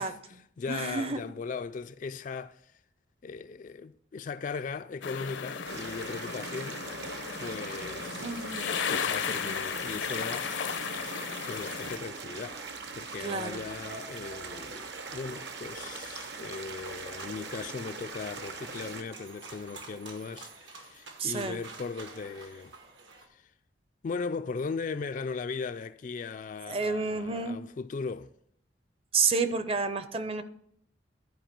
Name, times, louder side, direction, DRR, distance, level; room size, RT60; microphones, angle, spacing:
voice 1, 0.0-2.7 3.2-6.8 7.4-8.6 8.9-10.6 11.5-12.6 12.9-22.7 23.3-23.5 24.0-28.3, left 5 dB, 45° left, 0.3 m, -38 dB
voice 2, 0.7-1.2 8.2-8.9 13.2-13.6 21.2-21.6 26.7-27.6 29.1-30.4, right 4 dB, 30° right, 0.6 m, -30 dB
sound 1, 5.0-12.0, left 6 dB, 80° left, 0.7 m, -35 dB
sound 2, 5.7-19.0, right 4 dB, 65° right, 1.0 m, -42 dB
sound 3, 10.9-23.3, right 3 dB, 80° right, 1.6 m, -49 dB
11.5 x 4.8 x 5.9 m
head